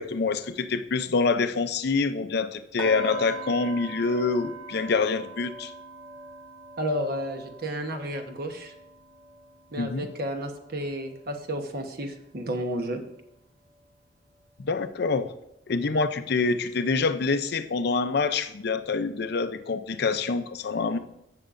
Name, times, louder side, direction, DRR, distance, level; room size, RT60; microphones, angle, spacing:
voice 1, 0.0-5.7 9.8-10.1 14.6-15.3 15.7-21.0, left 4 dB, 55° left, 10 dB, 0.5 m, -26 dB
sound 1, 2.8-12.7 13.0-13.3 13.8-13.9, right 3 dB, 85° right, 1.3 m, -43 dB
voice 2, 6.8-8.7 9.7-13.0, equal, 50° right, 5 dB, 1.1 m, -32 dB
15.5 x 6.5 x 2.6 m, 0.84 s
head